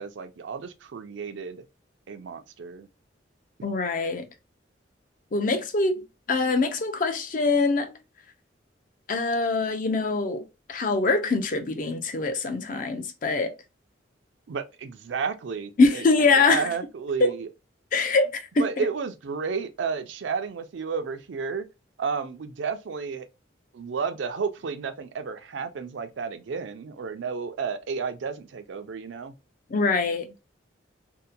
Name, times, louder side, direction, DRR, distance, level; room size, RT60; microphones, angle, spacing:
voice 1, 0.0-1.6 2.1-2.9 14.5-16.0 16.4-17.5 18.6-21.7 22.0-23.3 23.7-29.3, right 5 dB, 75° right, 0.4 m, -32 dB
voice 2, 3.6-4.3 5.3-6.0 6.3-7.9 9.1-10.4 10.7-13.5 15.8-16.7 17.2-17.3 17.9-18.8 29.7-30.3, left 3 dB, 45° left, 0.4 m, -23 dB
2.8 x 2.1 x 2.3 m
head